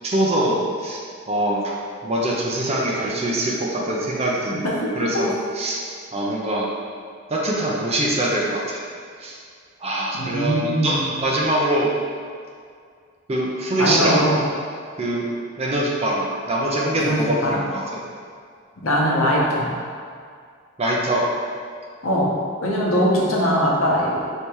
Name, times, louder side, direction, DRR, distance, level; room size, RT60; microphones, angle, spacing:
voice 1, 0.0-1.0 1.3-1.7 2.0-4.7 4.9-5.8 6.1-6.7 7.3-8.8 9.2-9.4 9.8-11.9 13.3-14.2 15.0-15.3 15.6-18.0 20.8-21.3, right 1 dB, 30° right, -3 dB, 0.5 m, -23 dB
voice 2, 10.2-11.1 13.8-14.4 17.0-17.6 18.8-19.7 22.0-22.3 22.6-24.4, equal, 75° left, -4 dB, 0.9 m, -21 dB
3.4 x 2.8 x 4.6 m, 2.2 s
head